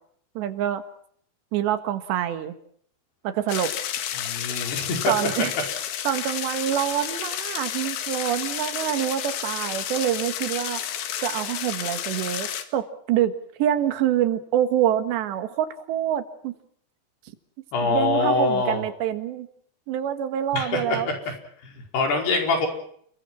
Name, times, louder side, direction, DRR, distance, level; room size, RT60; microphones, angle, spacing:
voice 1, 0.4-0.8 1.5-2.6 3.2-3.7 5.1-5.5 6.1-10.8 11.2-13.3 13.6-16.5 17.8-19.5 19.9-21.1, right 11 dB, 80° right, 10 dB, 3.8 m, -26 dB
sound 1, 3.5-12.7, left 10 dB, 85° left, 4.1 m, -31 dB
voice 2, 4.2-5.5 17.7-18.8 20.5-21.1 21.6-22.7, left 3 dB, 65° left, 3 dB, 6.8 m, -24 dB
30.0 x 22.5 x 6.1 m, 0.64 s
omnidirectional pair, 5.0 m